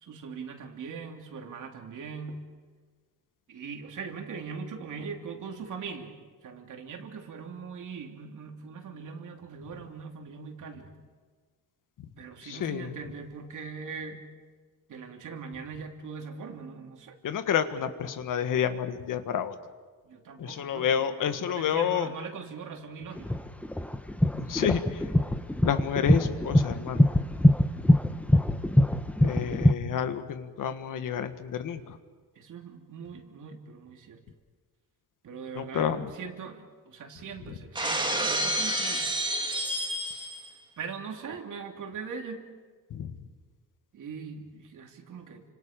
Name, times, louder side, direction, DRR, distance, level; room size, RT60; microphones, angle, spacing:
voice 1, 0.0-2.5 3.5-6.1 6.4-10.9 12.2-14.2 14.9-17.2 20.0-23.5 32.3-34.2 35.2-39.1 40.8-42.4 43.9-45.4, right 5 dB, 55° right, 3 dB, 3.1 m, -41 dB
voice 2, 12.5-12.9 17.2-19.5 20.4-22.1 24.3-25.0 25.6-27.0 29.2-31.8 35.6-36.1 42.9-43.1, left 8 dB, 60° left, 9 dB, 1.6 m, -29 dB
sound 1, 23.2-29.7, left 1 dB, 5° left, 0.9 m, -22 dB
Shatter, 37.7-40.5, right 1 dB, 15° right, 2.0 m, -29 dB
30.0 x 26.5 x 5.2 m, 1.4 s
cardioid pair, 140°, 36 cm